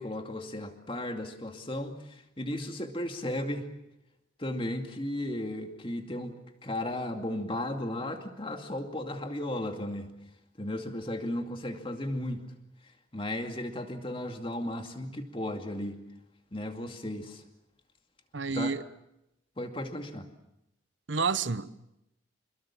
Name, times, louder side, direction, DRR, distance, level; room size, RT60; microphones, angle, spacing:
voice 1, 0.0-3.7 4.4-6.4 6.6-10.1 10.6-12.4 13.1-16.0 16.5-17.4 18.5-18.7 19.6-20.3, left 1 dB, 25° left, 2.4 m, -35 dB
voice 2, 18.3-18.8 21.1-21.8, right 4 dB, 70° right, 1.0 m, -29 dB
27.0 x 22.0 x 7.4 m
head